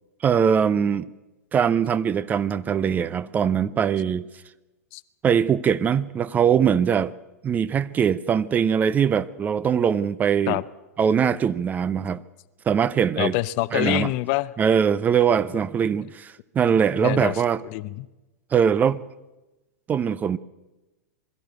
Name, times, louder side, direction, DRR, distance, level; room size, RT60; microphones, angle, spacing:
voice 1, 0.2-1.1 1.5-4.3 5.2-7.1 7.4-10.6 11.0-12.2 12.7-13.4 13.7-14.1 14.6-17.6 18.5-19.0 19.9-20.4, right 7 dB, 20° right, 0.6 m, -21 dB
voice 2, 13.2-14.5 17.0-17.3 17.7-18.1, left 19 dB, 40° left, 0.7 m, -25 dB
22.0 x 13.5 x 9.1 m
figure-of-eight pair, 100°, 9 cm